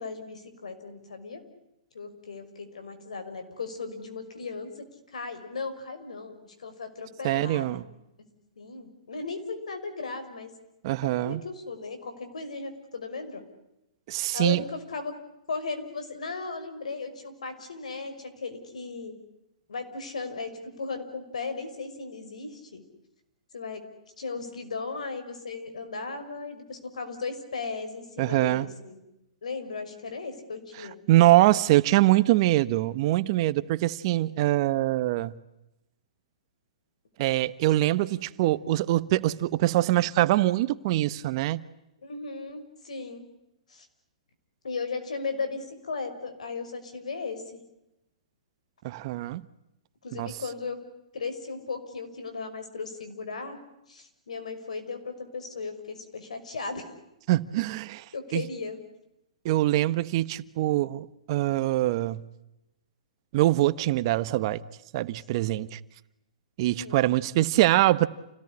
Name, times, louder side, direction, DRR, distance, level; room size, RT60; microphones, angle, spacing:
voice 1, 0.0-1.4 1.9-7.8 8.6-10.5 11.2-13.4 14.3-15.1 15.5-19.1 19.7-22.8 23.5-23.8 24.2-29.0 29.4-31.0 42.0-43.2 43.7-43.9 44.6-47.6 50.0-50.8 51.1-53.6 53.9-56.9 58.1-58.8 66.6-67.1, left 4 dB, 80° left, 5.8 m, -36 dB
voice 2, 7.2-7.8 10.8-11.4 14.1-14.6 28.2-28.7 31.1-35.3 37.2-41.6 48.8-49.4 50.1-50.4 57.3-58.0 58.3-58.4 59.4-62.2 63.3-64.6 64.9-65.8 66.6-68.1, right 16 dB, 45° right, 1.2 m, -23 dB
29.0 x 18.5 x 9.9 m
hypercardioid pair, 135°, 4 cm